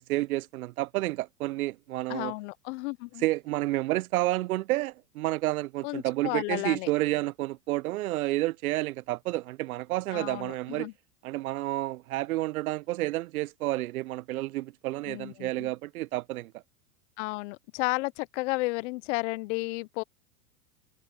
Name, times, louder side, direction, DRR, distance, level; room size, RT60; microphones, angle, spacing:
voice 1, 0.0-2.3 3.2-10.9 11.2-16.5, right 17 dB, 75° right, 0.6 m, -30 dB
voice 2, 2.1-3.2 5.8-6.9 10.1-10.9 15.1-15.7 17.2-20.0, left 24 dB, 55° left, 0.9 m, -33 dB
hypercardioid pair, 115°, 44 cm